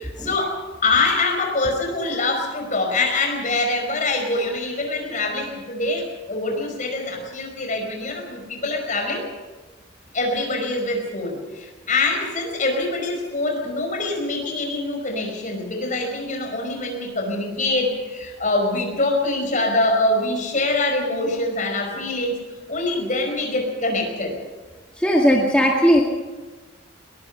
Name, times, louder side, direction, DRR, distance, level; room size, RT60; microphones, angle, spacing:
voice 1, 0.0-9.3 10.1-22.4 22.7-24.4, left 2 dB, 40° left, 3 dB, 5.2 m, -24 dB
voice 2, 25.0-26.0, equal, 5° left, -2 dB, 2.0 m, -17 dB
21.5 x 21.5 x 5.6 m, 1.3 s
head